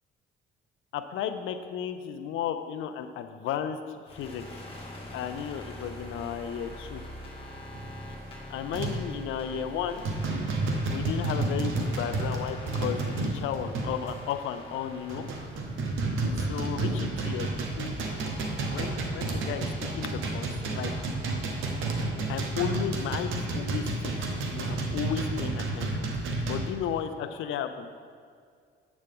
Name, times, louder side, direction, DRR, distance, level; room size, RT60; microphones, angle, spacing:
voice 1, 0.9-4.6 5.1-7.0 8.5-10.0 10.9-15.3 16.5-17.5 17.8-18.0 18.7-19.7 19.9-20.5 20.7-20.9 22.3-26.0 26.4-27.9, left 8 dB, 80° left, 8 dB, 0.5 m, -34 dB
sound 1, 4.0-16.8, left 1 dB, 25° left, 1.9 m, -44 dB
sound 2, 7.7-8.0 8.7-9.1 9.6-9.7 10.0-14.2 14.8-26.6, right 2 dB, 85° right, 1.0 m, -31 dB
7.6 x 7.1 x 3.5 m, 2.1 s
cardioid pair, 90°, 20 cm